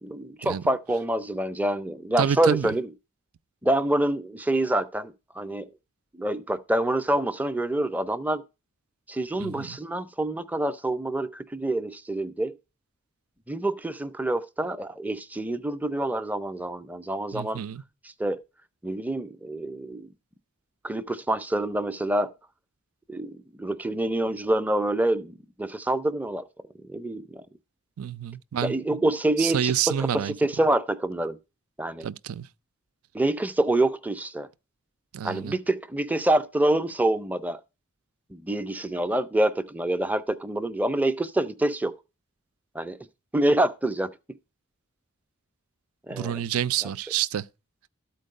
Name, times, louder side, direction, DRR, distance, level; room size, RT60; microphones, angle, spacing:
voice 1, 0.0-2.9 3.6-5.7 6.1-8.4 9.1-12.6 13.5-17.6 18.2-18.4 18.8-20.1 20.8-22.3 23.1-26.5 26.8-27.5 28.6-31.4 31.8-32.1 33.1-34.5 35.2-37.6 38.3-41.9 42.7-43.0 43.3-44.1 46.1-46.4, right 1 dB, 10° right, 0.4 m, -26 dB
voice 2, 2.2-2.7 9.4-9.8 17.3-17.8 28.0-29.0 29.4-30.3 32.0-32.5 35.1-35.5 46.1-47.4, right 9 dB, 90° right, 0.4 m, -28 dB
13.0 x 4.6 x 6.4 m
head